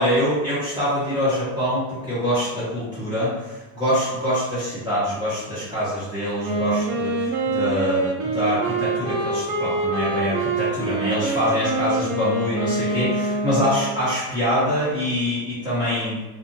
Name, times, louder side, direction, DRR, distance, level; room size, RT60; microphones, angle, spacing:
voice 1, 0.0-16.2, equal, 10° right, -13 dB, 0.9 m, -24 dB
Wind instrument woodwind instrument, 6.4-14.0, right 2 dB, 80° right, 0.7 m, -25 dB
2.5 x 2.0 x 2.8 m, 1.2 s
cardioid pair, 125°, 47 cm